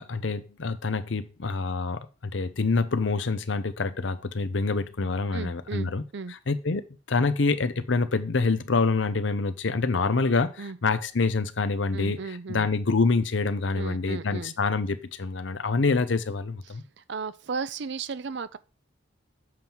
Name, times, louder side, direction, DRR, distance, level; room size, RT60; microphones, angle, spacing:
voice 1, 0.0-6.0 6.3-16.8, left 3 dB, 70° left, 0.7 m, -26 dB
voice 2, 5.3-6.3 10.6-10.8 11.9-12.7 13.7-14.5 17.0-18.6, right 5 dB, 65° right, 0.5 m, -35 dB
7.5 x 5.6 x 4.5 m
head